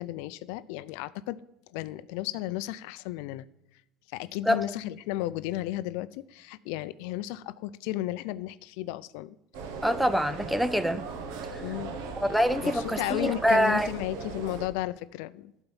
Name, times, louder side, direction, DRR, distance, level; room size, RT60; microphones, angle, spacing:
voice 1, 0.0-1.4 1.7-3.5 4.1-9.4 11.6-11.9 12.6-15.5, left 15 dB, 80° left, 15 dB, 0.4 m, -34 dB
sound 1, 9.5-14.7, right 5 dB, 80° right, 1.3 m, -38 dB
voice 2, 9.8-11.1 11.5-11.6 12.2-13.9, equal, ahead, 14 dB, 0.5 m, -25 dB
12.0 x 4.5 x 7.1 m, 0.87 s
cardioid pair, 160°, 0 cm